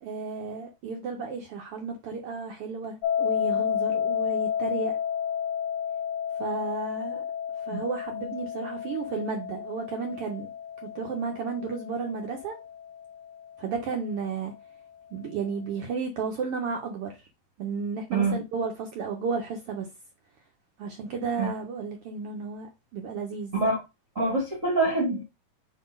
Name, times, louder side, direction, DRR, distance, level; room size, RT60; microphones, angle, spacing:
voice 1, 0.0-5.0 6.4-7.2 7.6-10.5 10.8-12.6 13.6-14.5 15.1-17.2 17.6-19.9 20.8-23.5, right 5 dB, 85° right, 1.2 m, -33 dB
sound 1, 3.0-13.9, left 8 dB, 70° left, 1.8 m, -31 dB
voice 2, 24.1-25.2, right 3 dB, 50° right, 0.9 m, -25 dB
5.8 x 3.1 x 5.3 m
omnidirectional pair, 3.9 m